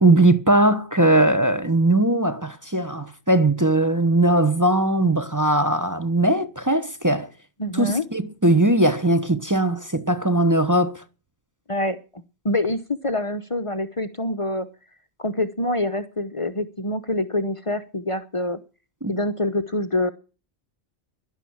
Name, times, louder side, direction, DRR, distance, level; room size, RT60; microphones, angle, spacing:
voice 1, 0.0-7.3 7.7-11.0 19.0-19.1, right 1 dB, 20° right, 1.0 m, -19 dB
voice 2, 7.6-8.0 11.7-14.7 15.2-18.6 19.1-20.1, left 1 dB, 35° left, 0.9 m, -26 dB
12.0 x 11.5 x 8.7 m
omnidirectional pair, 1.0 m